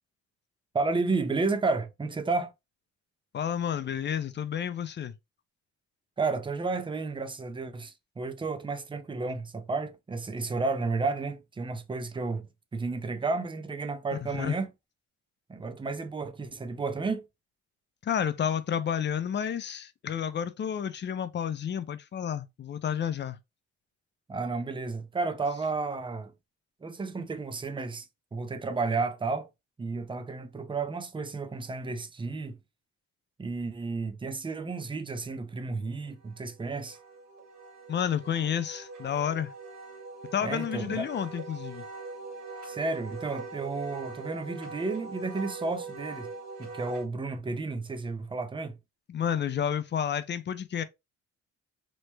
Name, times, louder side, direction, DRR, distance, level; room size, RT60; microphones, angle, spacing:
voice 1, 0.7-2.5 6.2-12.5 12.7-14.7 15.5-17.2 24.3-26.3 26.8-28.1 28.3-29.5 29.8-32.6 33.4-37.0 40.4-41.1 42.6-46.3 46.6-48.8, right 3 dB, 15° right, 0.5 m, -32 dB
voice 2, 3.3-5.1 14.3-14.6 18.0-23.4 37.9-39.5 40.3-41.9 49.1-50.8, left 8 dB, 35° left, 0.5 m, -30 dB
Wind instrument woodwind instrument, 36.1-47.1, right 3 dB, 70° right, 1.6 m, -42 dB
3.1 x 2.1 x 3.2 m
cardioid pair, 90°, 30 cm